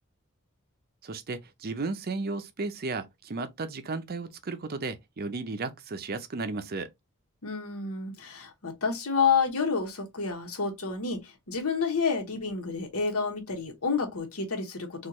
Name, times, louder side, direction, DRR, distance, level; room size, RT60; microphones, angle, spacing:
voice 1, 1.0-6.9, right 3 dB, 45° right, 0.6 m, -34 dB
voice 2, 7.4-15.1, left 5 dB, 75° left, 1.2 m, -29 dB
4.3 x 2.5 x 3.0 m
head